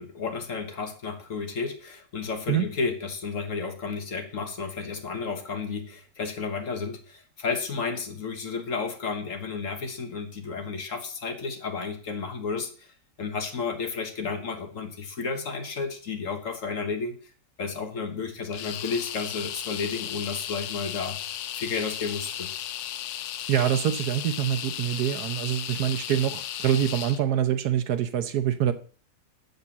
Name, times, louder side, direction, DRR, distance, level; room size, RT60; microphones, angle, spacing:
voice 1, 0.0-12.9 13.2-17.2 17.6-21.2 21.5-22.5, left 5 dB, 50° left, 1.4 m, -32 dB
sound 1, 18.5-27.2, left 11 dB, 80° left, 0.6 m, -35 dB
voice 2, 23.5-28.7, right 10 dB, 70° right, 1.2 m, -25 dB
6.8 x 6.6 x 7.1 m
omnidirectional pair, 1.8 m